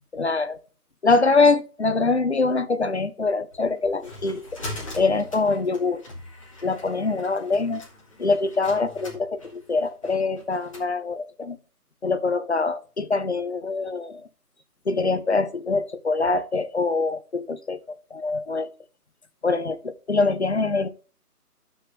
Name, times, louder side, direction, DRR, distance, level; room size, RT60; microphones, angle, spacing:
voice 1, 0.1-0.6 1.0-4.6 4.9-6.0 6.6-7.8 8.2-11.6 12.0-14.3 14.9-18.7 19.4-20.9, left 3 dB, 45° left, 11 dB, 0.7 m, -24 dB
sound 1, 3.5-10.9, left 1 dB, 20° left, 2.4 m, -41 dB
13.5 x 6.4 x 3.1 m, 0.38 s
figure-of-eight pair, 175°, 47 cm